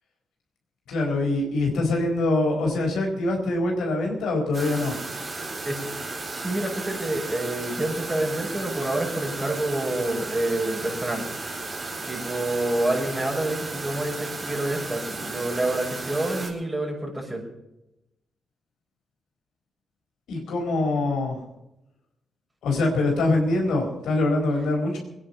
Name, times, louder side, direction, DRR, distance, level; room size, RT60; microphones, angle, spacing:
voice 1, 0.9-5.0 20.3-21.4 22.6-25.0, left 2 dB, 80° left, 1 dB, 4.3 m, -24 dB
sound 1, 4.5-16.5, right 3 dB, 40° right, 4.4 m, -34 dB
voice 2, 6.3-11.2 12.1-17.4, right 1 dB, 25° right, 0 dB, 6.6 m, -28 dB
21.0 x 10.0 x 5.6 m, 0.88 s
supercardioid pair, 50°, 0 cm